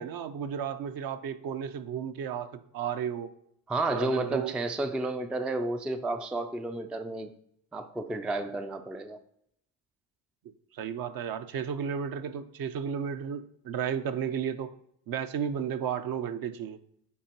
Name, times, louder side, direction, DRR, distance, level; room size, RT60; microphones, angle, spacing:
voice 1, 0.0-3.3 3.9-4.5 10.7-14.7 15.1-16.8, right 8 dB, 50° right, 10 dB, 0.7 m, -33 dB
voice 2, 3.7-7.3 7.7-9.2, right 2 dB, ahead, 8 dB, 0.3 m, -31 dB
8.5 x 4.4 x 2.9 m, 0.72 s
hypercardioid pair, 60°, 44 cm